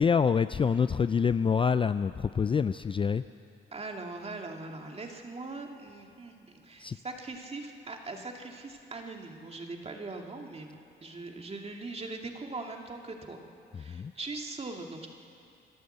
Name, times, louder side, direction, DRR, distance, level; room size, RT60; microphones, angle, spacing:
voice 1, 0.0-3.2 6.8-7.0 13.7-14.1, left 6 dB, 25° left, 13 dB, 0.4 m, -26 dB
voice 2, 3.7-13.4 13.7-15.1, right 3 dB, 30° right, 3 dB, 2.3 m, -41 dB
28.5 x 12.0 x 8.0 m, 2.7 s
cardioid pair, 90°, 20 cm